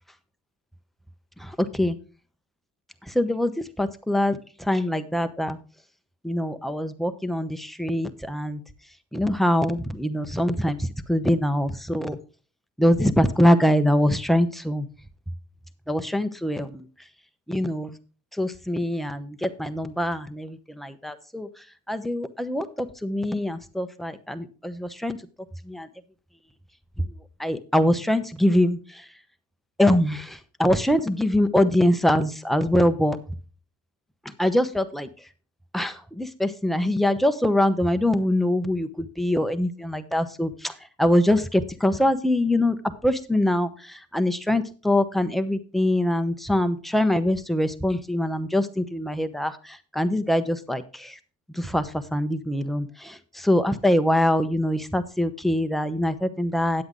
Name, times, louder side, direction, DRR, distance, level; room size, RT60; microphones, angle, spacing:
voice 1, 3.1-3.5 3.8-4.4 4.7-5.6 6.2-8.6 9.1-12.2 12.8-14.9 15.9-16.8 17.5-17.9 18.4-21.5 21.9-25.2 25.7-25.9 27.4-28.8 29.8-33.2 34.4-35.1 35.7-40.7 41.0-42.8 43.0-43.7 44.1-49.6 49.9-51.1 51.6-56.8, left 1 dB, ahead, 9 dB, 0.8 m, -23 dB
9.6 x 7.9 x 3.8 m, 0.37 s
cardioid pair, 90°, 30 cm